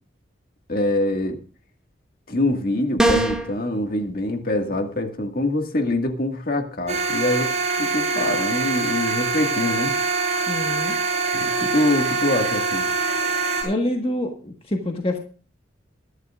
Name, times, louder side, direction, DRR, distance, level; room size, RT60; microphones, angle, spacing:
voice 1, 0.7-1.4 2.3-7.5 7.8-9.9 11.3-12.9, left 1 dB, 50° left, 5 dB, 1.9 m, -24 dB
sound 1, 3.0-3.5, right 1 dB, 5° right, 1.9 m, -19 dB
sound 2, 6.9-13.6, right 4 dB, 35° right, 6.8 m, -24 dB
voice 2, 10.5-10.9 13.6-15.2, left 1 dB, 30° left, 2 dB, 1.5 m, -26 dB
23.0 x 11.0 x 2.5 m, 0.40 s
head